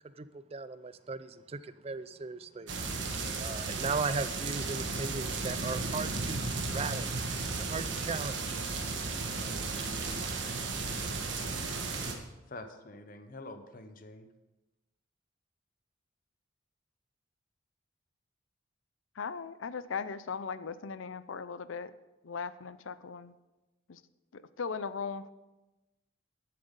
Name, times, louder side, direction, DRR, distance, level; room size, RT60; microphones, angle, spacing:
voice 1, 0.2-2.7 3.4-6.4 6.7-7.1 7.6-8.6 9.3-9.6, right 4 dB, 30° right, 14 dB, 0.4 m, -37 dB
sound 1, 2.7-12.1, right 3 dB, 65° right, 1.4 m, -34 dB
voice 2, 12.5-14.3, left 2 dB, 45° left, 8 dB, 0.7 m, -46 dB
voice 3, 19.1-21.9 22.2-23.3 23.9-24.0 24.3-25.3, left 5 dB, 85° left, 14 dB, 0.5 m, -38 dB
11.0 x 7.7 x 5.3 m, 1.1 s
head